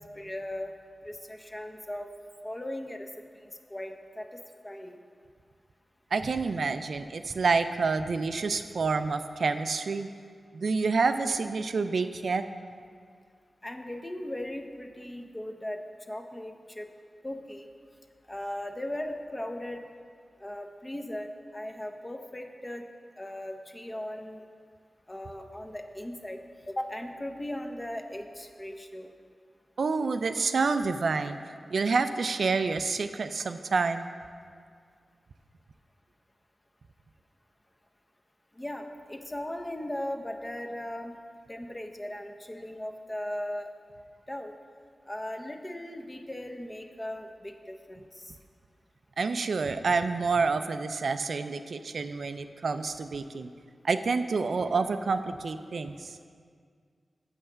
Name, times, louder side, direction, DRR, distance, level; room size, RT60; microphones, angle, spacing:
voice 1, 0.1-0.7 1.0-2.1 2.4-3.1 3.7-5.0 13.6-15.8 16.1-16.9 17.2-17.7 18.3-19.8 20.4-22.8 23.2-24.4 25.1-26.4 26.7-29.1 38.6-41.2 41.5-43.7 44.3-44.5 45.1-48.3, left 1 dB, 20° left, 4 dB, 0.7 m, -38 dB
voice 2, 6.1-10.1 10.5-12.4 29.8-31.4 31.7-34.1 49.2-53.5 53.8-56.2, right 4 dB, 75° right, 9 dB, 0.3 m, -28 dB
7.2 x 5.6 x 6.6 m, 2.1 s
wide cardioid pair, 75°, 0 cm